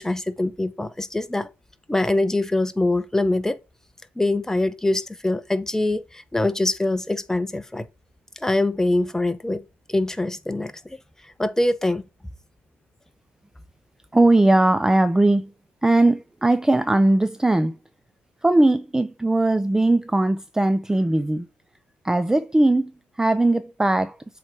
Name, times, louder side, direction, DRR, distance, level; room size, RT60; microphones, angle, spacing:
voice 1, 0.0-1.5 1.9-3.6 4.2-7.8 8.4-9.6 9.9-11.0 11.2-12.0, left 2 dB, 10° left, 0.9 m, -24 dB
voice 2, 14.1-15.5 15.8-17.8 18.4-21.5 22.0-22.9 23.2-24.2, right 2 dB, 10° right, 0.5 m, -19 dB
7.3 x 3.2 x 4.9 m
supercardioid pair, 70°, 5 cm